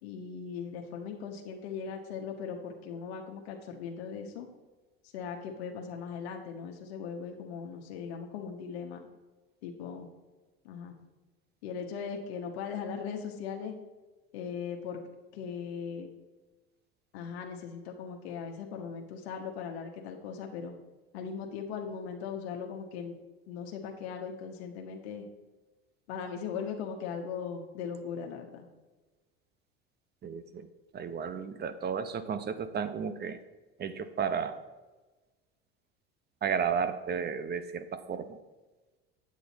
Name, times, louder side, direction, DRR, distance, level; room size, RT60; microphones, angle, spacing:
voice 1, 0.0-4.5 5.1-9.1 9.6-10.1 10.6-11.0 11.6-13.7 14.3-15.0 15.3-16.1 17.1-20.7 21.1-23.1 23.5-25.3 26.1-28.7, left 6 dB, 80° left, 3 dB, 1.0 m, -39 dB
voice 2, 30.2-33.4 33.8-34.6 36.4-38.4, right 6 dB, 30° right, 11 dB, 0.7 m, -33 dB
8.3 x 8.1 x 4.1 m, 1.2 s
supercardioid pair, 90°, 31 cm